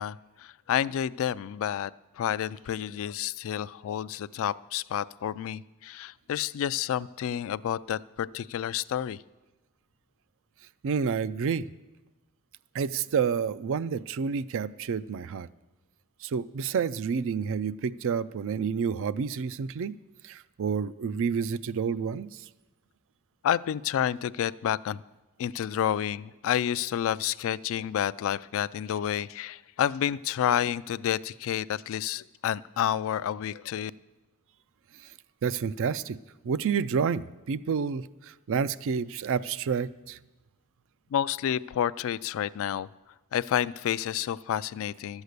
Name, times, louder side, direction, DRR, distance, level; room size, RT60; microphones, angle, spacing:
voice 1, 0.0-1.9 2.2-9.2 23.4-25.0 25.4-33.9 41.1-42.9 43.3-45.2, left 10 dB, 65° left, 18 dB, 0.3 m, -29 dB
voice 2, 10.8-11.7 12.7-15.5 16.2-20.0 20.2-22.3 35.4-36.2 36.4-40.2, right 6 dB, 60° right, 16 dB, 0.4 m, -29 dB
12.5 x 8.1 x 6.6 m, 1.1 s
head